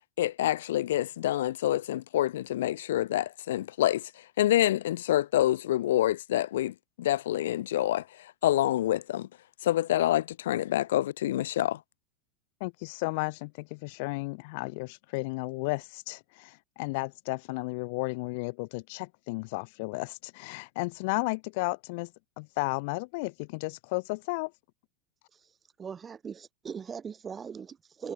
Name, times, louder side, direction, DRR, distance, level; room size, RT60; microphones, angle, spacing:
voice 1, 0.2-4.1 4.4-8.0 8.4-9.3 9.6-11.8, left 13 dB, 85° left, 0.5 m, -27 dB
voice 2, 12.6-24.5, left 28 dB, 60° left, 1.4 m, -33 dB
voice 3, 25.8-28.1, right 6 dB, 20° right, 2.2 m, -40 dB
supercardioid pair, 130°, 0 cm